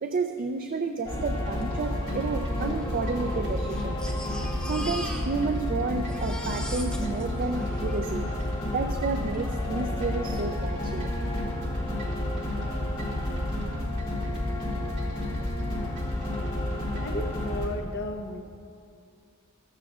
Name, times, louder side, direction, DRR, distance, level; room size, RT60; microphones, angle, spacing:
voice 1, 0.0-4.0 4.7-8.2 8.7-11.1, right 4 dB, 45° right, 6 dB, 0.4 m, -31 dB
sound 1, 1.1-17.7, left 1 dB, 25° left, 2.1 m, -30 dB
sound 2, 1.3-17.2, right 1 dB, 60° right, 1.8 m, -44 dB
Crying sobbing, 1.6-1.7 1.9-2.0 2.8-5.7 5.9-8.5 9.3-9.4 9.8-9.9, equal, 5° left, 0.8 m, -41 dB
voice 2, 17.0-18.4, left 1 dB, 55° left, 5 dB, 0.6 m, -34 dB
14.0 x 13.5 x 2.4 m, 2.4 s
head